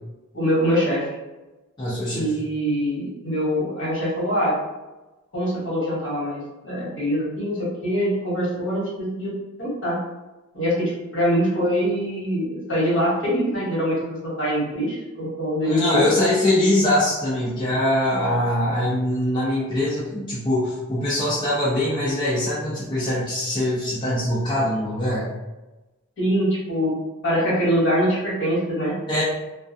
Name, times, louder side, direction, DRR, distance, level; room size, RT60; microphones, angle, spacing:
voice 1, 0.3-1.1 2.1-4.5 5.3-10.0 10.5-16.1 26.2-27.0 27.2-28.9, equal, 60° left, -6 dB, 1.1 m, -24 dB
voice 2, 1.8-2.3 15.6-25.3 29.1-29.2, left 1 dB, 20° left, -9 dB, 0.5 m, -22 dB
2.3 x 2.2 x 2.5 m, 1.1 s
head